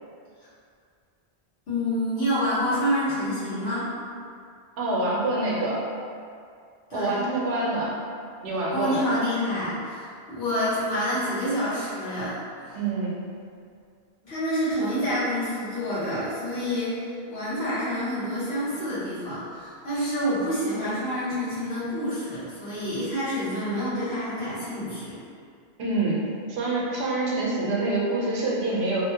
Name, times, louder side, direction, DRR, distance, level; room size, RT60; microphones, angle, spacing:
voice 1, 1.7-3.9 6.9-7.2 8.7-12.4 12.7-12.8 14.2-25.2, equal, 75° left, -11 dB, 1.3 m, -28 dB
voice 2, 4.8-5.8 6.9-7.9 8.4-9.0 12.7-13.1 25.8-26.2 26.5-29.1, right 2 dB, 80° right, -5 dB, 0.9 m, -26 dB
2.8 x 2.1 x 2.7 m, 2.3 s
omnidirectional pair, 1.1 m